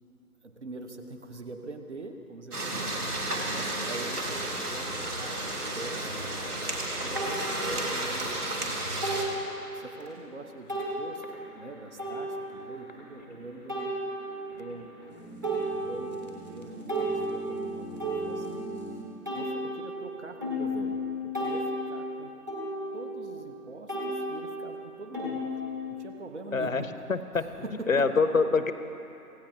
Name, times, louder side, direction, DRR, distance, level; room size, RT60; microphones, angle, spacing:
voice 1, 0.4-3.0 3.5-6.3 7.0-9.1 9.5-11.2 11.5-14.0 14.5-14.9 15.2-18.6 19.3-22.3 22.9-25.6 25.9-26.9 27.3-28.7, right 2 dB, 45° right, 5 dB, 1.3 m, -43 dB
sound 1, 2.5-9.2, right 1 dB, 70° right, 2.9 m, -32 dB
sound 2, 5.3-19.0, equal, 10° left, 0.9 m, -47 dB
sound 3, 7.1-7.4 9.0-9.4 10.0-10.1 10.7-11.0 12.0-12.6 13.7-14.5 15.0-15.1 15.4-16.3 16.6-18.8 19.3-23.6 23.9-26.2, equal, 10° right, 1.1 m, -33 dB
voice 2, 26.5-27.5 27.9-28.7, left 4 dB, 55° left, 10 dB, 0.8 m, -25 dB
26.0 x 16.5 x 2.9 m, 2.8 s
figure-of-eight pair, 155°, 47 cm